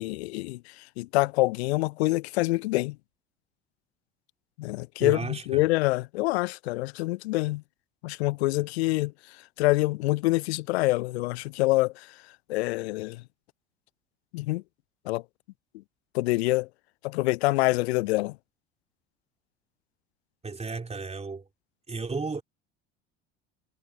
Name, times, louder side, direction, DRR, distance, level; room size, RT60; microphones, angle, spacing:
voice 1, 0.0-3.0 4.6-7.6 8.0-12.2 12.5-13.2 14.3-14.6 15.0-15.2 16.1-16.7 17.0-18.4, left 21 dB, 65° left, 0.6 m, -26 dB
voice 2, 5.0-5.6 20.4-21.5 21.9-22.4, right 4 dB, 20° right, 3.5 m, -33 dB
figure-of-eight pair, 65°, 34 cm